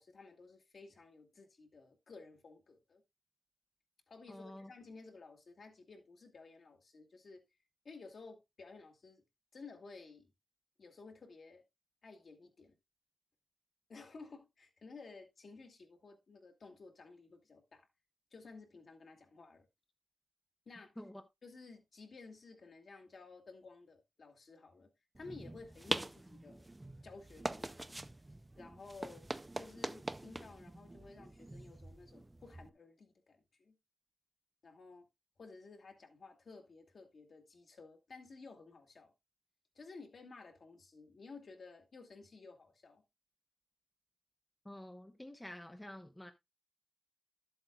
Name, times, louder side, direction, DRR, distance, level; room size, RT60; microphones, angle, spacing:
voice 1, 0.0-3.0 4.1-7.4 7.8-9.2 9.5-10.3 10.8-11.6 12.0-12.7 13.9-17.9 18.3-19.7 20.7-20.9 21.4-24.9 25.2-26.7 27.0-28.0 28.6-33.7 34.6-35.0 35.4-39.1 39.8-43.0, left 4 dB, 55° left, 2.0 m, -54 dB
voice 2, 4.3-4.7 21.0-21.2 44.6-46.3, left 1 dB, 10° left, 0.7 m, -49 dB
sound 1, 25.1-32.7, right 1 dB, 15° right, 0.4 m, -44 dB
12.5 x 7.9 x 2.3 m
wide cardioid pair, 150°, 0 cm